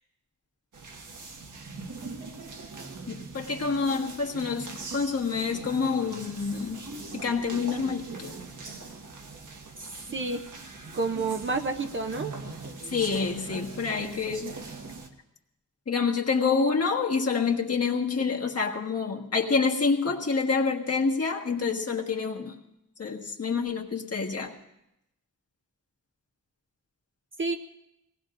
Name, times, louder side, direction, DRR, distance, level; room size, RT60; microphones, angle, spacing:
sound 1, 0.7-15.1, right 3 dB, 80° right, 1.5 m, -41 dB
voice 1, 3.1-8.4 12.9-14.6 15.9-22.5 23.0-24.5, left 5 dB, 55° left, 1 dB, 1.5 m, -27 dB
voice 2, 9.8-10.4 10.9-12.3 27.4-27.6, right 3 dB, 40° right, 5 dB, 0.6 m, -30 dB
24.0 x 18.5 x 2.5 m, 0.85 s
wide cardioid pair, 150°, 30 cm